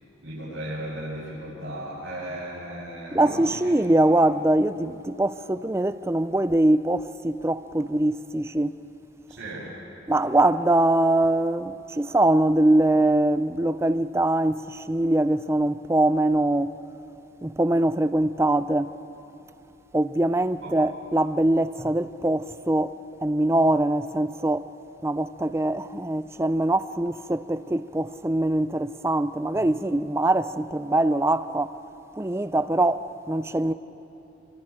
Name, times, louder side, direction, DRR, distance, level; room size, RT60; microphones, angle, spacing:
voice 1, 0.2-3.7 9.4-9.7 20.6-20.7, right 1 dB, 85° right, 7.3 m, -35 dB
voice 2, 3.1-8.8 10.1-16.8 17.4-18.9 19.9-23.0 23.2-24.7 25.0-31.8 32.2-33.7, right 1 dB, 15° right, 0.4 m, -23 dB
28.0 x 25.0 x 4.9 m
head